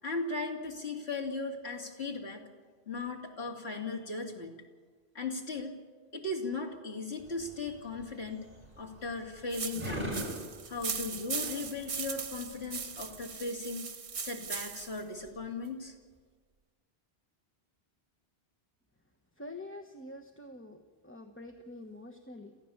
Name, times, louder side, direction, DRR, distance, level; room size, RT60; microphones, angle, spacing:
voice 1, 0.0-2.4 2.9-4.6 5.1-5.7 6.1-8.5 8.8-10.1 10.7-13.9 14.2-15.9, left 3 dB, 75° left, 0 dB, 3.3 m, -37 dB
sound 1, 7.2-13.3, equal, 40° right, 5.2 m, -43 dB
sound 2, 9.5-15.0, right 6 dB, 85° right, 1.4 m, -39 dB
voice 2, 19.4-22.6, left 2 dB, 10° left, 3 dB, 1.1 m, -46 dB
27.5 x 15.5 x 7.3 m, 1.5 s
omnidirectional pair, 1.1 m